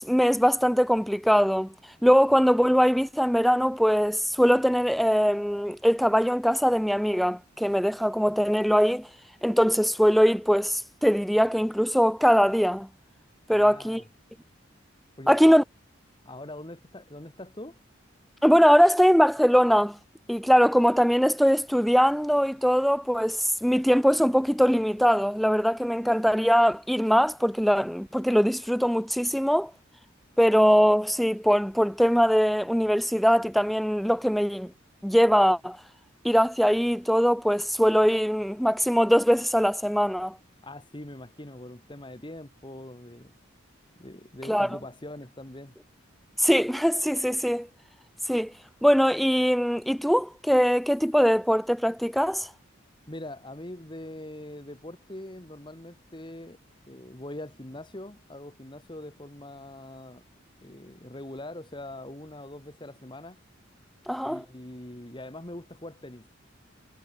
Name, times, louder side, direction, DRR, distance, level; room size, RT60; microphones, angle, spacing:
voice 1, 0.0-1.7 2.0-9.1 9.4-12.9 13.5-14.0 15.3-15.6 18.4-20.0 20.3-29.7 30.4-34.7 35.0-35.8 36.2-40.4 44.5-44.8 46.4-47.7 48.3-48.5 48.8-52.5 64.1-64.4, equal, ahead, 0.5 m, -22 dB
voice 2, 13.5-14.1 15.2-15.5 16.3-17.8 40.6-43.3 44.0-45.8 53.1-56.6 56.9-60.2 60.6-63.4 64.2-66.3, left 1 dB, 25° left, 1.7 m, -42 dB
head